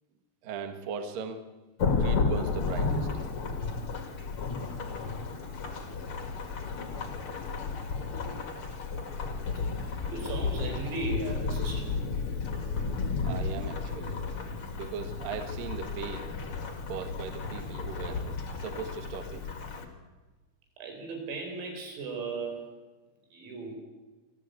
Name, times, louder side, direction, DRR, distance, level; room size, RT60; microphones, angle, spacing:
voice 1, 0.4-1.4 1.8-3.1 9.1-9.3 13.2-14.2 14.7-16.3 16.9-18.2 18.6-19.4, right 6 dB, 60° right, 6 dB, 2.5 m, -38 dB
Thunderstorm / Rain, 1.8-19.8, left 4 dB, 55° left, 1.5 m, -33 dB
voice 2, 10.1-11.9 20.8-22.7 23.3-23.8, right 3 dB, 85° right, 3 dB, 7.2 m, -36 dB
25.0 x 14.5 x 8.3 m, 1.3 s
omnidirectional pair, 5.9 m